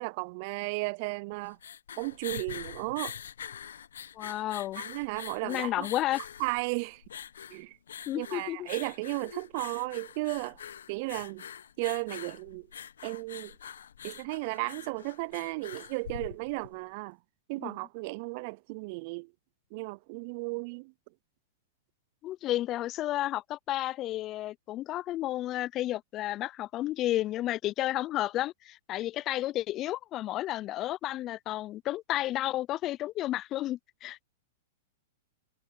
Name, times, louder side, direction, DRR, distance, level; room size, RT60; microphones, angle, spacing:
voice 1, 0.0-1.6 2.0-3.1 4.8-5.9 6.4-7.0 7.5-7.8 8.1-10.6 10.9-11.4 11.8-12.7 13.0-13.5 14.0-17.2 17.5-19.3 19.7-20.9, right 27 dB, 50° right, 0.3 m, -34 dB
sound 1, 1.3-16.8, left 8 dB, 85° left, 1.0 m, -44 dB
voice 2, 4.2-4.8 5.4-6.2 8.1-8.7 17.6-17.8 22.2-34.2, left 14 dB, 35° left, 0.4 m, -32 dB
hypercardioid pair, 125°, 0 cm